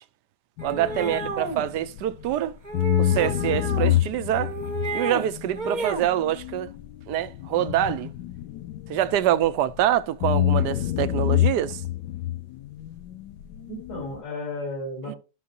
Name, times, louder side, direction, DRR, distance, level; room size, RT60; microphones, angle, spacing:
sound 1, 0.6-2.3 2.7-9.8 10.2-14.2, left 13 dB, 85° left, 1.2 m, -27 dB
sound 2, 0.6-1.7 2.6-4.0 4.4-5.3 5.5-6.1, right 3 dB, 35° right, 0.9 m, -31 dB
voice 1, 0.6-2.6 3.0-4.5 4.9-6.7 7.1-8.1 8.9-11.8 15.1-15.2, right 12 dB, 75° right, 1.2 m, -25 dB
voice 2, 13.7-15.2, left 1 dB, 65° left, 6.9 m, -34 dB
13.5 x 5.9 x 2.8 m
omnidirectional pair, 1.9 m